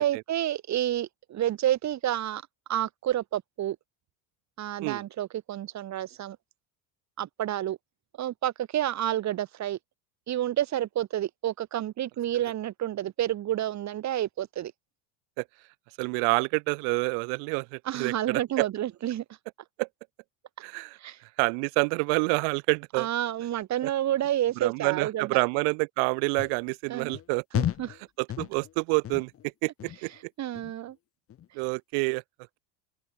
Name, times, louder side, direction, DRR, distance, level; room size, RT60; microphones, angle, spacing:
voice 1, 0.0-2.4 2.7-3.8 4.6-6.4 7.2-7.8 8.2-9.8 10.3-14.7 17.8-19.2 21.0-21.2 23.0-25.4 26.9-27.1 27.5-28.0 30.4-30.9, right 12 dB, 40° right, 4.5 m, -29 dB
voice 2, 16.0-18.7 19.8-19.9 20.6-21.0 21.4-23.1 23.8-23.9 24.6-27.4 28.2-30.1 31.5-32.2, right 40 dB or more, 85° right, 1.5 m, -28 dB
sound 1, 26.4-26.6 27.1-27.2 27.5-28.0 28.3-28.7 29.0-29.4 29.8-30.2 30.5-30.9 31.3-31.4, left 11 dB, 30° left, 1.8 m, -32 dB
open air
cardioid pair, 160°, 42 cm